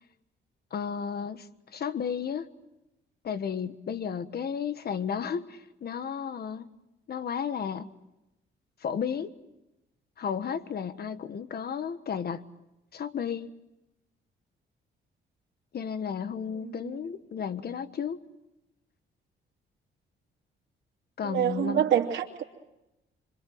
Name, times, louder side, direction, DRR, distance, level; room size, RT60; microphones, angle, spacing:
voice 1, 0.7-2.5 3.2-6.7 7.1-7.9 8.8-9.3 10.2-12.4 12.9-13.5 15.7-18.2 21.2-21.9, left 7 dB, 50° left, 12 dB, 1.4 m, -33 dB
voice 2, 21.2-22.4, right 10 dB, 70° right, -4 dB, 2.9 m, -26 dB
26.5 x 24.5 x 7.8 m, 0.96 s
cardioid pair, 90°, 20 cm